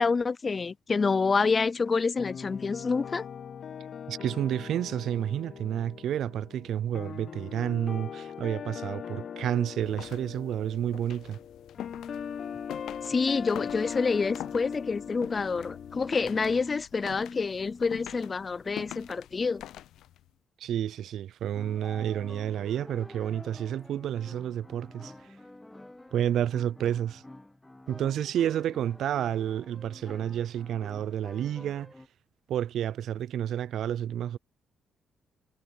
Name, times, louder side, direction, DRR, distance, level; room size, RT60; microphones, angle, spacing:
voice 1, 0.0-3.2 13.0-19.6, left 4 dB, 35° left, 0.4 m, -27 dB
sound 1, 2.2-16.6, left 7 dB, 55° left, 1.0 m, -40 dB
voice 2, 4.1-11.4 20.6-25.1 26.1-27.2 27.9-31.9 32.5-34.4, right 10 dB, 75° right, 0.4 m, -30 dB
sound 2, 9.8-20.3, left 13 dB, 80° left, 0.6 m, -46 dB
sound 3, 21.5-32.1, left 1 dB, 10° left, 1.5 m, -48 dB
cardioid pair, 90°, 0 cm